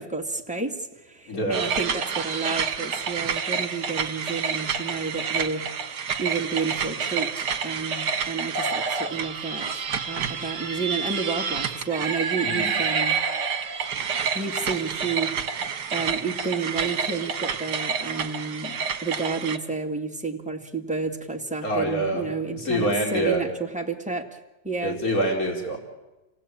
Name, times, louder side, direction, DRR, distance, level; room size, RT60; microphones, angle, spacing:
voice 1, 0.0-13.2 14.3-24.4 24.6-25.0, right 4 dB, 5° right, 2 dB, 2.0 m, -31 dB
voice 2, 1.3-1.7 12.4-12.7 21.6-22.2 22.5-23.5 24.8-25.8, right 1 dB, 45° left, 1 dB, 4.5 m, -25 dB
sound 1, 1.5-19.6, right 6 dB, 65° right, 1.9 m, -28 dB
28.5 x 18.0 x 8.8 m, 1.1 s
omnidirectional pair, 2.0 m